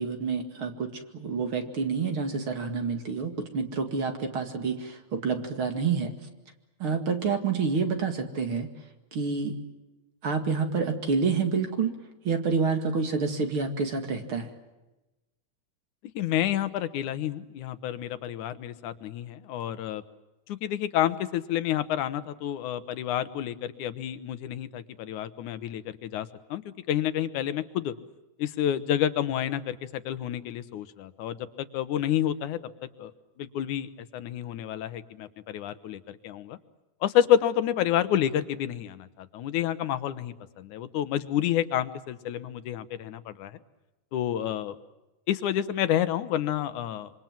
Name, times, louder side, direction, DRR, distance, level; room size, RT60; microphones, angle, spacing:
voice 1, 0.0-6.1 6.8-8.7 9.1-9.6 10.2-12.0 12.2-14.5, right 5 dB, 45° right, 6 dB, 2.8 m, -28 dB
voice 2, 16.2-20.0 20.5-26.6 26.9-27.9 28.4-32.6 33.0-33.1 33.4-36.6 37.0-43.6 44.1-44.8 45.3-47.1, left 11 dB, 85° left, 12 dB, 2.5 m, -29 dB
26.5 x 25.0 x 7.5 m, 1.0 s
omnidirectional pair, 3.4 m